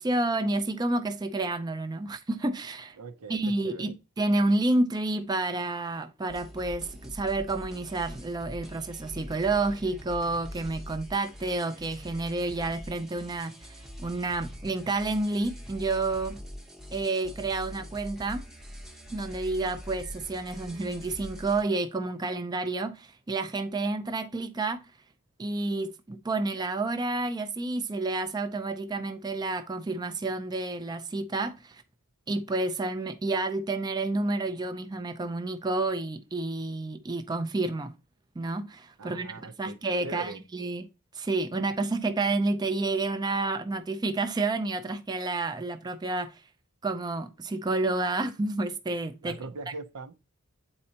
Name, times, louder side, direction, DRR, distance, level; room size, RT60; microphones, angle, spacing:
voice 1, 0.0-3.0 3.3-13.5 14.0-16.4 16.9-18.4 19.1-24.8 25.4-31.8 32.3-37.9 38.4-40.9 41.1-46.4 46.8-49.4, right 2 dB, 20° right, 0.4 m, -30 dB
voice 2, 3.0-3.9 39.0-40.4 49.2-50.1, right 3 dB, 85° right, 0.6 m, -41 dB
sound 1, 6.3-21.6, equal, ahead, 0.8 m, -43 dB
8.7 x 4.2 x 2.8 m
head